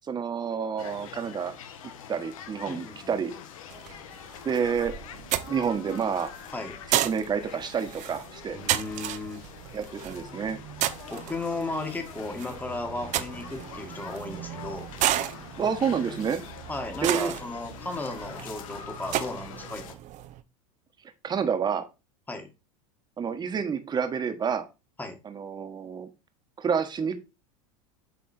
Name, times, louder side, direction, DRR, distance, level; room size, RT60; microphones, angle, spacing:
voice 1, 0.1-1.5 2.1-3.3 4.4-4.9 5.5-6.3 6.9-8.6 9.7-10.6 15.6-16.4 17.0-17.3 21.2-21.8 23.2-24.6 25.2-26.1 26.6-27.1, right 6 dB, 25° right, 8 dB, 1.4 m, -28 dB
sound 1, 0.8-20.0, left 8 dB, 80° left, 1.1 m, -44 dB
voice 2, 2.7-3.1 6.5-6.8 8.5-9.4 11.1-14.9 16.7-19.9 22.3-22.5 25.0-25.2, left 2 dB, 10° left, 5 dB, 1.8 m, -35 dB
sound 2, 3.7-20.4, right 12 dB, 45° right, 0.8 m, -34 dB
7.9 x 4.2 x 4.4 m, 0.27 s
supercardioid pair, 110°, 17 cm